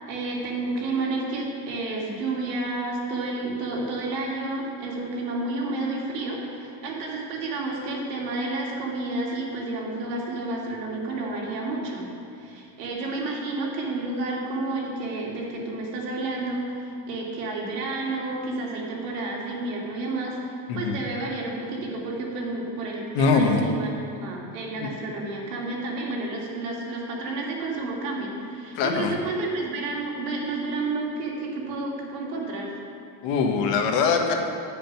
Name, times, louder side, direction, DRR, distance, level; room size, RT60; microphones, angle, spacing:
voice 1, 0.1-23.9 24.2-32.7, right 2 dB, 90° right, -2 dB, 2.1 m, -30 dB
voice 2, 20.7-21.0 23.1-23.6 24.8-24.9 28.7-29.1 33.2-34.3, left 5 dB, 60° left, 3 dB, 1.3 m, -22 dB
10.0 x 5.1 x 5.9 m, 2.4 s
cardioid pair, 140°, 47 cm